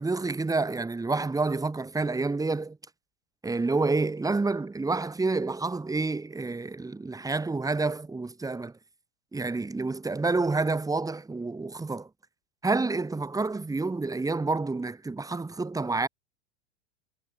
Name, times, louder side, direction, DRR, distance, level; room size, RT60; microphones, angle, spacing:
voice 1, 0.0-2.8 3.4-8.7 9.3-12.1 12.6-16.1, right 3 dB, 10° right, 6.3 m, -28 dB
figure-of-eight pair, 90°, 34 cm